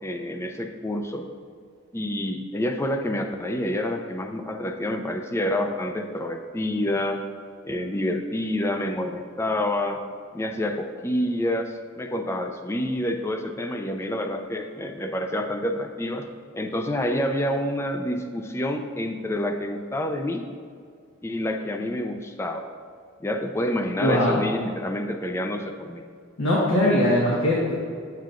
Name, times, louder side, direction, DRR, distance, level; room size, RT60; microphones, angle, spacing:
voice 1, 0.0-1.3 1.9-7.2 7.6-10.0 10.3-16.3 16.5-20.5 21.2-22.7 23.2-26.0, left 1 dB, 15° left, 5 dB, 0.4 m, -28 dB
voice 2, 24.0-24.4 26.4-27.7, left 1 dB, 90° left, -6 dB, 1.4 m, -21 dB
9.2 x 7.5 x 2.5 m, 2.2 s
head